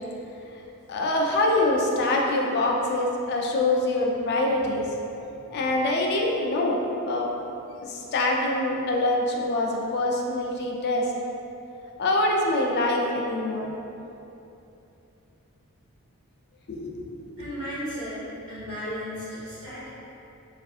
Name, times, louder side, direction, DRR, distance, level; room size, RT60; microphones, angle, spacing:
voice 1, 0.9-4.9 5.5-6.8 7.0-7.3 7.8-11.0 12.0-13.7 16.7-17.4, left 2 dB, 50° left, 0 dB, 0.4 m, -25 dB
voice 2, 17.4-19.9, equal, 85° right, -14 dB, 1.3 m, -35 dB
3.5 x 2.4 x 2.4 m, 2.8 s
head